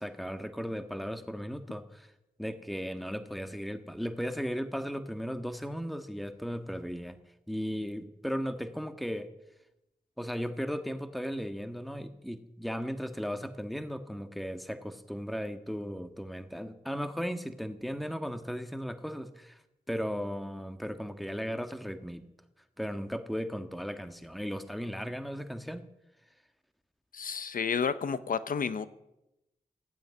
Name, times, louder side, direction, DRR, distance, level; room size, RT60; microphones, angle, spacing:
voice 1, 0.0-2.1 2.4-7.2 7.5-9.3 10.2-19.6 19.9-22.2 22.8-25.8, equal, ahead, 8 dB, 1.6 m, -36 dB
voice 2, 27.1-28.9, left 6 dB, 75° left, 14 dB, 0.9 m, -31 dB
15.0 x 9.0 x 9.5 m, 0.91 s
cardioid pair, 40°, 14 cm